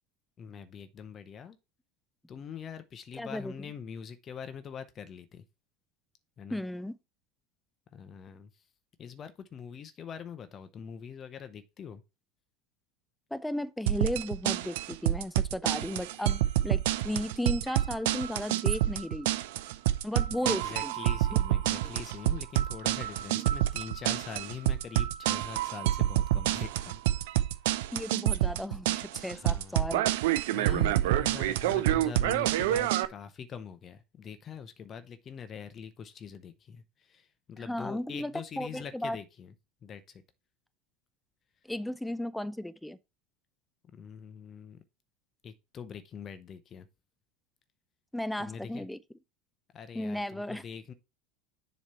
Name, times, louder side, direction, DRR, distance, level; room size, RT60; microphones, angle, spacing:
voice 1, 0.4-1.6 2.3-5.4 6.4-6.6 7.9-8.5 9.0-12.0 20.4-27.2 29.3-29.9 30.5-39.5 39.8-40.2 43.9-44.8 45.4-46.9 48.4-48.9 49.7-50.9, left 7 dB, 35° left, 0.7 m, -43 dB
voice 2, 3.1-3.7 6.5-7.0 13.3-19.3 20.0-20.9 21.8-22.0 23.4-23.5 27.9-30.1 37.6-39.2 41.6-43.0 48.1-49.0 49.9-50.6, left 1 dB, 5° left, 0.4 m, -35 dB
sound 1, 13.9-33.1, right 13 dB, 70° right, 0.5 m, -28 dB
7.2 x 3.1 x 5.5 m
hypercardioid pair, 80°, 0 cm